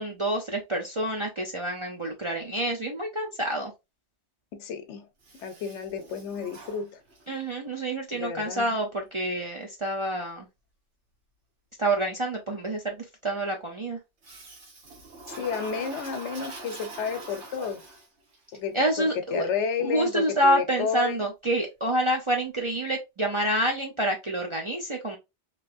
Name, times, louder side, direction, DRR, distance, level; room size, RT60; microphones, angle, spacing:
voice 1, 0.0-3.7 7.3-10.5 11.8-14.0 18.7-19.5 19.8-25.2, right 1 dB, 40° right, 0.4 m, -27 dB
voice 2, 4.5-5.1 5.3-7.0 8.1-8.8 15.4-17.8 18.5-21.3, left 6 dB, 80° left, 1.0 m, -31 dB
Toilet flush, 5.2-7.5 14.2-18.4, right 2 dB, 75° right, 1.3 m, -43 dB
3.1 x 2.8 x 2.4 m
omnidirectional pair, 1.2 m